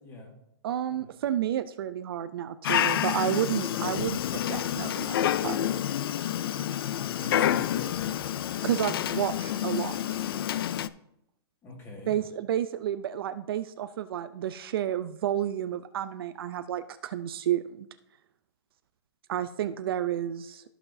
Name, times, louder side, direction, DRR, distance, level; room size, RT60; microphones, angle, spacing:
voice 1, 0.0-0.3 0.9-1.1 6.8-7.9 11.6-12.2, left 2 dB, 15° left, 0 dB, 1.8 m, -44 dB
voice 2, 0.6-4.2 4.5-5.2 5.4-5.6 8.6-10.2 12.1-17.9 19.3-20.6, right 11 dB, 60° right, 12 dB, 0.5 m, -31 dB
Dog, 2.6-10.9, left 11 dB, 60° left, 0.4 m, -28 dB
14.0 x 5.8 x 2.6 m, 0.79 s
hypercardioid pair, 160°, 14 cm